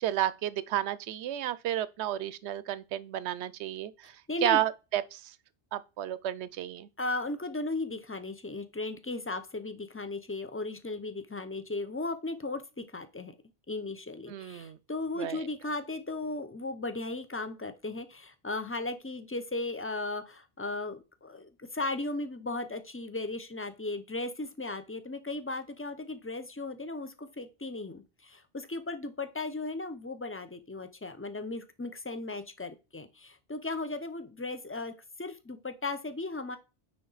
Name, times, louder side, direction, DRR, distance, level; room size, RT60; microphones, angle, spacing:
voice 1, 0.0-4.1 4.4-5.3 5.7-6.9 14.3-14.8 15.2-15.4, right 12 dB, 85° right, 0.9 m, -32 dB
voice 2, 4.3-4.6 7.0-13.3 13.7-34.9 35.2-36.6, left 2 dB, 20° left, 0.4 m, -36 dB
9.5 x 3.7 x 3.9 m
omnidirectional pair, 1.1 m